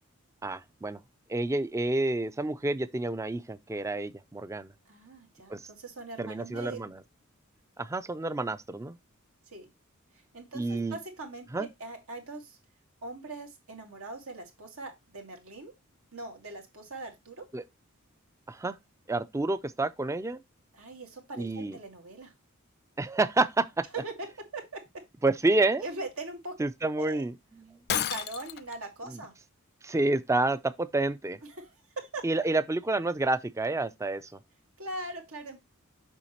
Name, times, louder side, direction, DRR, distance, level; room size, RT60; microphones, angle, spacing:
voice 1, 0.4-1.0 1.3-4.7 5.5-5.7 6.2-7.0 7.8-9.0 10.5-11.0 11.5-11.7 17.5-17.6 18.5-18.8 19.1-20.4 21.4-21.8 23.0-23.9 25.2-25.9 26.6-27.8 29.1-29.2 29.8-31.4 32.2-34.4, right 2 dB, 15° right, 0.4 m, -29 dB
voice 2, 4.9-6.8 9.5-9.7 10.3-12.6 13.0-15.7 16.1-17.4 20.7-22.3 23.9-24.3 24.5-24.8 25.8-26.5 27.0-27.2 27.9-29.3 31.5-32.2 34.8-35.6, right 2 dB, 85° right, 2.1 m, -41 dB
Shatter, 27.9-28.7, left 10 dB, 50° left, 0.4 m, -31 dB
6.9 x 5.7 x 2.9 m
head